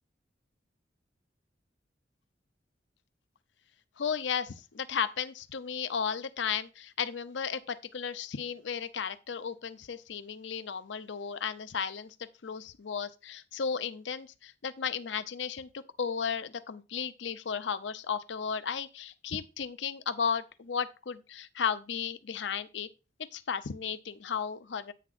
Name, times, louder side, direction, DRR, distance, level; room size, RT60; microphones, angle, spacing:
voice 1, 4.0-12.1 12.4-22.9 23.3-24.9, left 6 dB, 85° left, 0.6 m, -34 dB
10.0 x 8.6 x 2.5 m
head